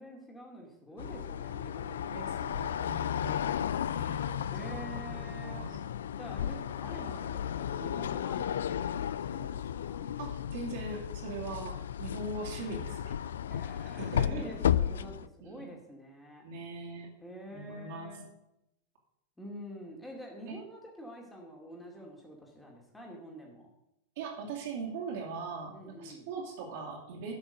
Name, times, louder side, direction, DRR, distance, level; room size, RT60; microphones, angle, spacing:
voice 1, 0.0-3.7 4.5-5.9 6.2-10.1 13.5-16.4 17.2-18.2 19.4-23.7 25.7-26.3, equal, 5° left, -1 dB, 2.4 m, -47 dB
sound 1, 1.0-15.3, left 9 dB, 65° left, 0.4 m, -34 dB
voice 2, 2.0-5.8 10.2-13.1 14.0-14.5 15.4-15.6 16.4-17.1 17.5-18.2 20.5-20.6 24.2-27.3, right 3 dB, 55° right, -3 dB, 2.6 m, -41 dB
11.5 x 6.1 x 6.6 m, 0.87 s
figure-of-eight pair, 90°, 0 cm